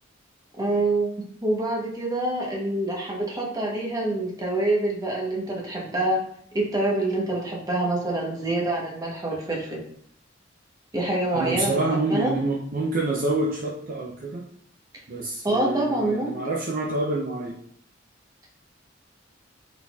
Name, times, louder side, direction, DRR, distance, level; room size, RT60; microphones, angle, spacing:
voice 1, 0.6-6.2 6.5-9.8 10.9-11.8 12.1-12.3 15.4-16.4, right 2 dB, 20° right, -2 dB, 0.9 m, -26 dB
voice 2, 11.3-14.4 15.1-17.6, right 2 dB, 45° right, -1 dB, 0.5 m, -27 dB
3.9 x 3.9 x 2.3 m, 0.64 s
head